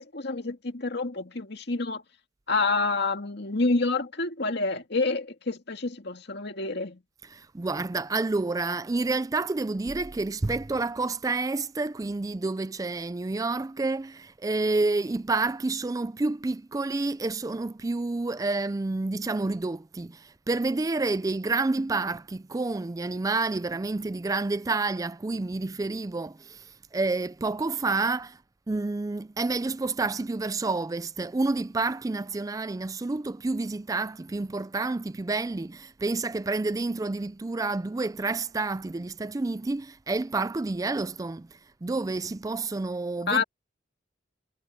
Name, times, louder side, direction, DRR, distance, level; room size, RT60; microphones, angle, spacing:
voice 1, 0.0-2.0 2.5-7.0 43.3-43.4, left 3 dB, 60° left, 2.2 m, -28 dB
voice 2, 7.3-28.4 28.7-43.4, right 3 dB, 20° right, 0.4 m, -29 dB
head